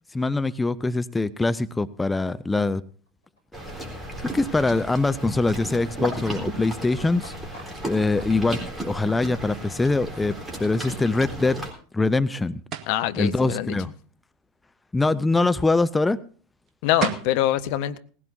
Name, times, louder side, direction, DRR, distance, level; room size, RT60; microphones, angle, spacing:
voice 1, 0.1-2.8 3.7-3.9 4.2-10.3 10.6-11.7 11.9-12.5 13.2-13.9 14.9-16.2, left 3 dB, 10° left, 14 dB, 0.6 m, -23 dB
Livestock farm animals working animals, 2.9-11.0 11.2-11.3 11.6-11.7 11.9-12.0 12.2-12.3 12.5-12.6 12.8-12.9 13.1-13.2 13.4-13.5, right 1 dB, 90° left, 3.8 m, -53 dB
sound 1, 3.5-11.7, right 1 dB, 10° right, 3.8 m, -34 dB
sound 2, 12.7-13.0 16.7-16.8 17.0-17.4, right 9 dB, 40° right, 1.4 m, -29 dB
voice 2, 12.9-13.8 16.8-18.0, left 13 dB, 55° left, 11 dB, 0.8 m, -24 dB
19.0 x 16.0 x 2.7 m, 0.41 s
figure-of-eight pair, 75°, 0 cm